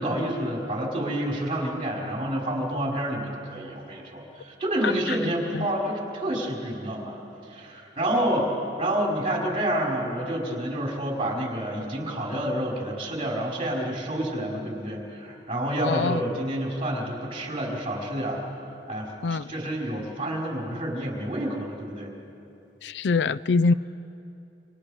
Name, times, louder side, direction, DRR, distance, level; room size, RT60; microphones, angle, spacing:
voice 1, 0.0-7.2 7.5-8.5 8.8-18.4 18.9-22.1, right 1 dB, 30° right, -2 dB, 4.7 m, -29 dB
voice 2, 15.8-16.2 19.2-19.4 22.8-23.7, left 4 dB, 80° left, 17 dB, 0.4 m, -23 dB
29.5 x 26.5 x 5.1 m, 2.8 s
head